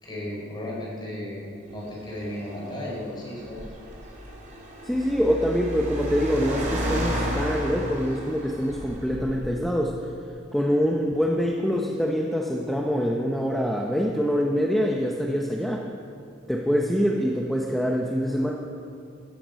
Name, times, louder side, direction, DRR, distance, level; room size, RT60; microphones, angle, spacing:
voice 1, 0.0-3.6, left 1 dB, 25° left, -4 dB, 4.4 m, -35 dB
Car, 1.7-9.7, equal, 40° right, 3.3 m, -33 dB
voice 2, 4.8-9.9 10.5-15.9 16.5-18.5, equal, ahead, 0 dB, 0.8 m, -25 dB
16.5 x 13.5 x 5.3 m, 2.5 s
head